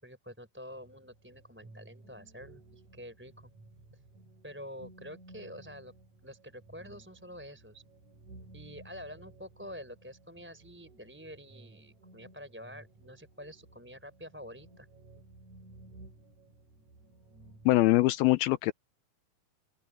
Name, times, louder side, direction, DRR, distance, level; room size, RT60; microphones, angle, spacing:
voice 1, 0.0-3.5 4.4-5.9 6.2-7.8 8.5-14.9, equal, 5° right, 4.4 m, -47 dB
sound 1, 0.7-17.8, right 2 dB, 50° right, 8.6 m, -56 dB
voice 2, 17.7-18.7, left 18 dB, 80° left, 2.6 m, -23 dB
open air
omnidirectional pair, 4.3 m